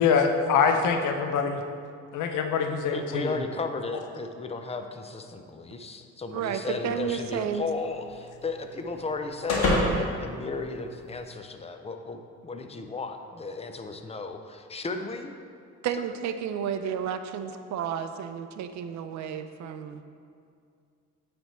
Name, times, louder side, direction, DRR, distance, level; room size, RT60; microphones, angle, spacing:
voice 1, 0.0-1.6 2.1-3.4, left 5 dB, 80° left, 5 dB, 0.7 m, -24 dB
voice 2, 2.9-15.3, left 3 dB, 20° left, 6 dB, 0.5 m, -35 dB
voice 3, 6.3-7.6 15.8-20.0, right 8 dB, 65° right, 9 dB, 0.5 m, -32 dB
sound 1, 6.9-11.3, left 1 dB, 55° left, 1.6 m, -31 dB
8.9 x 3.5 x 4.2 m, 2.3 s
cardioid pair, 90°, 30 cm